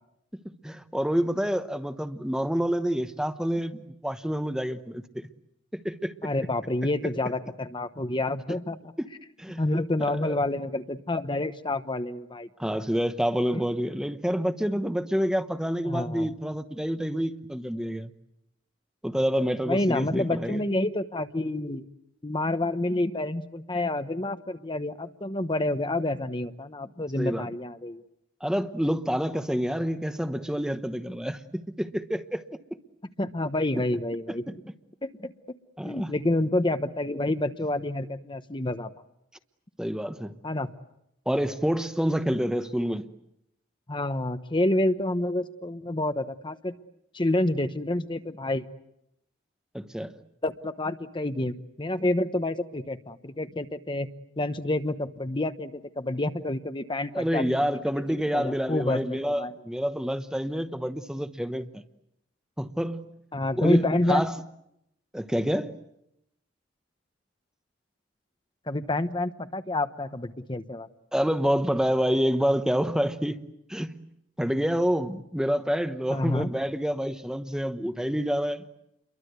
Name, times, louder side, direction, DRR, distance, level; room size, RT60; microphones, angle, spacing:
voice 1, 0.4-5.3 5.7-6.3 9.0-9.1 9.4-9.6 10.2-10.4 12.6-18.1 19.0-20.6 27.2-27.5 28.4-32.4 35.8-36.1 39.8-40.3 41.3-43.1 49.7-50.2 57.1-61.8 62.6-63.1 63.6-64.4 65.1-65.7 71.1-73.4 73.7-74.0 74.4-78.6, equal, 5° right, 1.0 m, -28 dB
voice 2, 6.2-8.8 9.6-12.8 13.5-13.6 14.7-14.8 15.8-16.3 19.7-21.8 22.2-28.0 33.2-34.4 35.0-35.3 35.8-38.9 40.4-40.7 43.9-46.8 47.1-48.6 50.4-54.1 54.4-57.4 58.3-59.5 63.3-64.2 68.7-70.9 76.1-76.5, left 1 dB, 25° left, 1.0 m, -28 dB
29.5 x 23.0 x 8.1 m
head